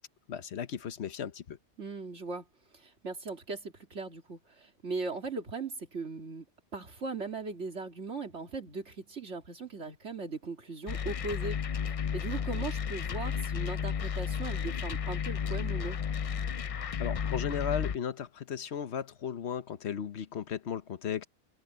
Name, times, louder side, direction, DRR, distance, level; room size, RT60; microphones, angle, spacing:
voice 1, 0.3-1.6 17.0-21.2, left 8 dB, 70° left, 1.2 m, -35 dB
voice 2, 1.8-2.4 2.7-6.4 6.7-11.6 12.1-16.0, right 4 dB, 75° right, 2.9 m, -38 dB
sound 1, 10.9-18.0, left 7 dB, 50° left, 0.4 m, -33 dB
omnidirectional pair, 1.2 m